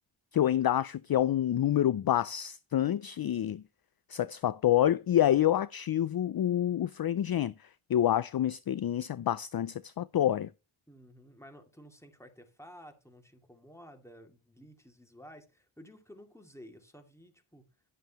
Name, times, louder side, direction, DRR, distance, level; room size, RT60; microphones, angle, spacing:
voice 1, 0.3-3.6 4.1-10.5, left 11 dB, 50° left, 0.5 m, -27 dB
voice 2, 10.9-17.6, equal, 5° left, 2.5 m, -53 dB
11.0 x 9.1 x 3.0 m
cardioid pair, 55°, 50 cm